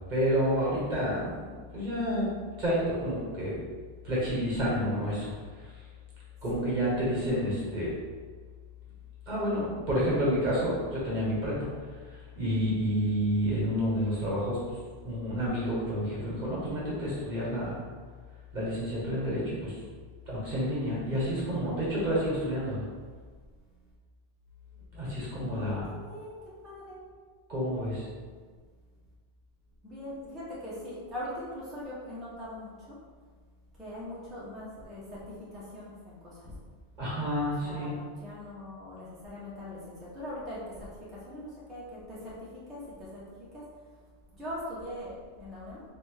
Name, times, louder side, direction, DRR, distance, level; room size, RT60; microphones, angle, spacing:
voice 1, 0.1-2.3 2.6-3.6 4.0-5.3 6.4-7.9 9.3-11.6 12.3-14.6 15.0-17.7 18.5-19.7 20.3-22.8 24.9-25.9 27.5-28.0 37.0-38.0, equal, 40° right, -7 dB, 1.5 m, -29 dB
voice 2, 25.5-27.0 29.8-33.0 33.8-36.5 37.6-43.6 44.3-45.8, left 1 dB, ahead, -9 dB, 1.0 m, -41 dB
3.5 x 3.1 x 4.7 m, 1.5 s
omnidirectional pair, 1.2 m